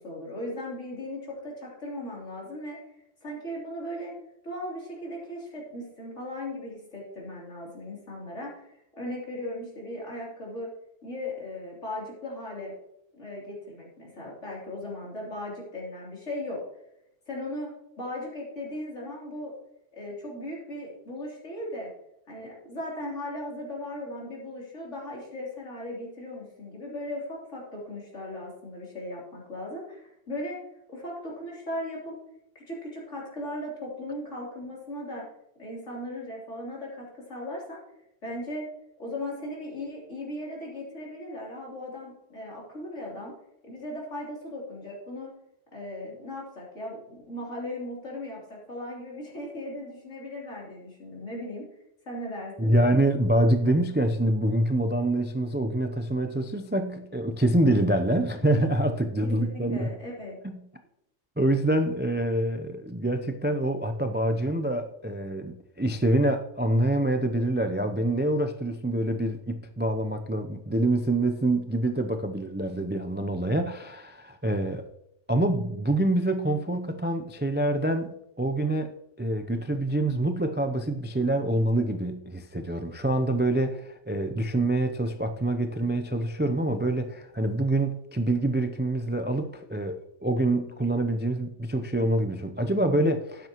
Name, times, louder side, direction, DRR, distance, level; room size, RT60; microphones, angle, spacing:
voice 1, 0.0-2.8 3.2-4.1 4.4-10.7 11.0-12.7 13.1-16.6 17.3-17.7 18.0-19.5 19.9-21.9 22.3-30.6 30.9-32.2 32.6-35.3 35.6-37.8 38.2-38.7 39.0-43.3 43.6-45.3 45.7-51.7 52.1-52.7 59.2-60.4, left 1 dB, 75° left, 3.8 m, -37 dB
voice 2, 52.6-59.9 60.4-60.6 61.4-74.8 75.3-78.9 79.2-93.5, right 1 dB, 15° right, 0.3 m, -26 dB
12.0 x 9.4 x 3.0 m
omnidirectional pair, 1.3 m